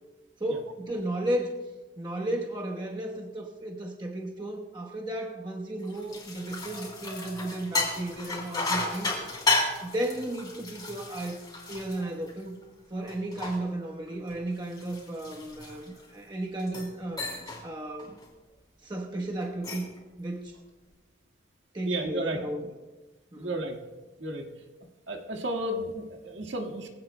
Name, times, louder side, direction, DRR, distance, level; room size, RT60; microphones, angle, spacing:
voice 1, 0.4-1.5 2.0-9.1 9.8-12.6 12.9-17.2 17.6-18.2 18.8-19.9 20.2-20.6 21.7-22.6 23.3-23.5, right 1 dB, 25° right, -1 dB, 1.1 m, -34 dB
sound 1, 5.8-12.6 13.1-16.1 16.6-16.9 17.2-17.6 18.0-18.3 19.4-20.0, left 3 dB, 20° left, 3.2 m, -33 dB
voice 2, 21.8-22.4 23.4-23.8 24.2-24.4 25.1-26.9, right 1 dB, 70° right, 3 dB, 1.7 m, -32 dB
22.5 x 17.0 x 2.2 m, 1.2 s
head